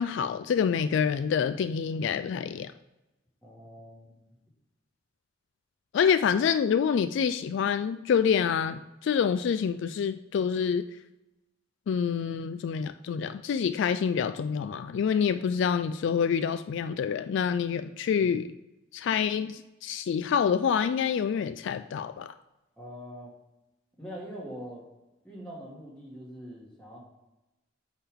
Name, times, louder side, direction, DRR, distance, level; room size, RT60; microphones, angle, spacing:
voice 1, 0.0-2.7 5.9-10.8 11.9-18.5 18.9-22.3, left 7 dB, 65° left, 10 dB, 0.3 m, -27 dB
voice 2, 3.4-4.2 18.2-18.3 22.8-23.3 24.0-24.8 25.2-27.0, equal, 5° left, -6 dB, 2.3 m, -43 dB
8.8 x 3.6 x 3.6 m, 0.99 s
head